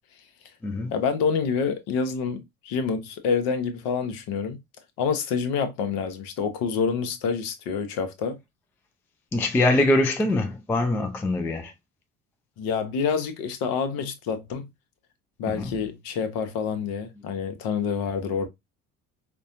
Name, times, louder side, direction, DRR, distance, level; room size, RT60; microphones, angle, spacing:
voice 1, 0.9-4.6 5.0-8.4 12.6-14.7 15.4-18.5, left 6 dB, 50° left, 0.9 m, -27 dB
voice 2, 9.3-11.7 15.5-15.7, left 2 dB, 5° left, 0.3 m, -23 dB
5.2 x 2.2 x 2.5 m
figure-of-eight pair, 60°, 46 cm